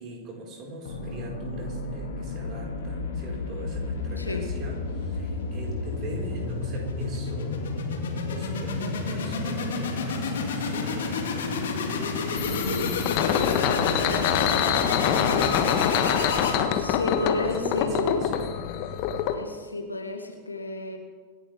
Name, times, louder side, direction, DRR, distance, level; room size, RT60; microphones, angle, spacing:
voice 1, 0.0-7.6 8.3-11.7 12.6-18.5, right 1 dB, 40° right, -2 dB, 5.7 m, -41 dB
sound 1, 0.9-17.0, left 4 dB, 65° left, 2.9 m, -30 dB
sound 2, 12.4-19.3, left 9 dB, 45° left, 1.5 m, -25 dB
voice 2, 12.5-13.0 16.8-18.3 19.3-21.0, left 1 dB, 85° left, 3 dB, 1.8 m, -32 dB
26.0 x 11.5 x 3.8 m, 1.5 s
figure-of-eight pair, 90°, 0 cm